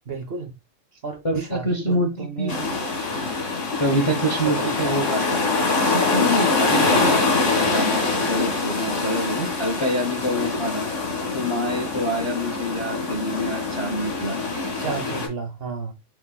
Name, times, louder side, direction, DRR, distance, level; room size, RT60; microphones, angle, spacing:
voice 1, 0.0-0.5 1.0-2.8 3.9-5.0 14.8-15.9, right 5 dB, 50° right, 1.0 m, -33 dB
voice 2, 1.2-2.5 3.8-5.4 5.8-10.8 11.3-14.4, equal, 35° left, 0.5 m, -26 dB
sound 1, 2.5-15.3, left 3 dB, 65° left, 2.2 m, -24 dB
6.9 x 3.0 x 2.3 m
omnidirectional pair, 1.4 m